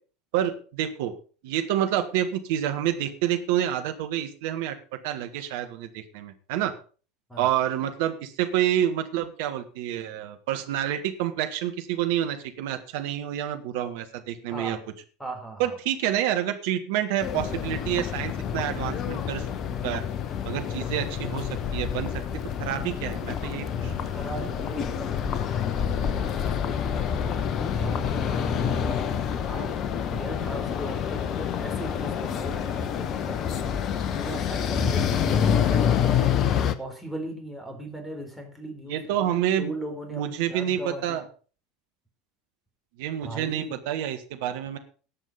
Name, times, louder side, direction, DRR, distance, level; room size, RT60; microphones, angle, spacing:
voice 1, 0.3-1.1 1.4-4.8 5.0-6.7 7.4-14.8 15.6-19.5 19.8-20.0 20.5-22.1 22.6-24.1 38.9-39.7 40.1-41.2 43.0-44.8, right 11 dB, 60° right, 7 dB, 1.7 m, -28 dB
voice 2, 14.5-14.8 15.2-15.8 24.1-29.8 30.1-36.1 36.8-39.1 39.3-41.2 43.2-43.8, right 1 dB, 5° left, 5 dB, 4.0 m, -39 dB
sound 1, 17.2-36.7, left 8 dB, 40° left, 1.1 m, -27 dB
17.5 x 6.4 x 5.2 m, 0.39 s
figure-of-eight pair, 75°, 0 cm